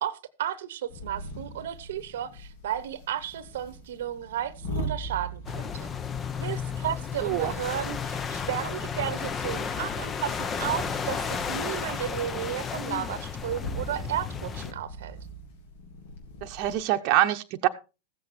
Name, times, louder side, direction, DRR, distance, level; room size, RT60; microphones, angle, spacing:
voice 1, 0.0-5.9 6.4-15.2, right 10 dB, 75° right, 1.0 m, -33 dB
sound 1, 0.9-16.8, right 1 dB, 70° left, 3.4 m, -41 dB
sound 2, 5.5-14.7, left 6 dB, 25° left, 0.8 m, -33 dB
voice 2, 7.2-7.6 16.4-17.7, right 13 dB, 50° right, 0.9 m, -25 dB
15.0 x 7.7 x 4.3 m
hypercardioid pair, 110°, 0 cm